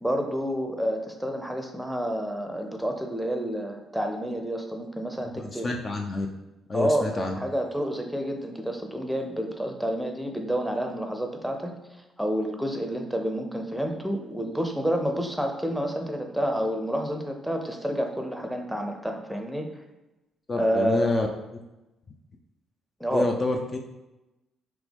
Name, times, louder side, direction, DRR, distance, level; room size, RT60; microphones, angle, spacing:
voice 1, 0.0-5.7 6.7-11.7 12.2-19.7 20.5-21.1 23.0-23.3, equal, ahead, 3 dB, 0.7 m, -29 dB
voice 2, 5.4-6.3 6.7-7.4 20.5-21.3 23.1-23.8, left 3 dB, 35° left, 3 dB, 0.4 m, -28 dB
5.7 x 2.1 x 3.4 m, 1.0 s
figure-of-eight pair, 45°, 0 cm